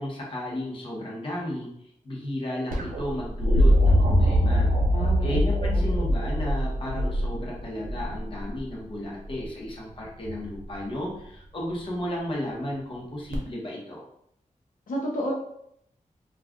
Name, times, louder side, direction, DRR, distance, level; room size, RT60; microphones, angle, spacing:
voice 1, 0.0-1.7 2.0-4.7 5.2-14.0, left 1 dB, 40° left, -4 dB, 0.9 m, -33 dB
sound 1, 2.7-8.6 10.2-10.8 13.3-13.4, equal, 85° right, 0.6 m, -23 dB
voice 2, 4.9-5.4 5.7-5.9 14.9-15.3, equal, 75° left, -4 dB, 0.6 m, -31 dB
2.4 x 2.3 x 3.5 m, 0.73 s
wide cardioid pair, 130°, 14 cm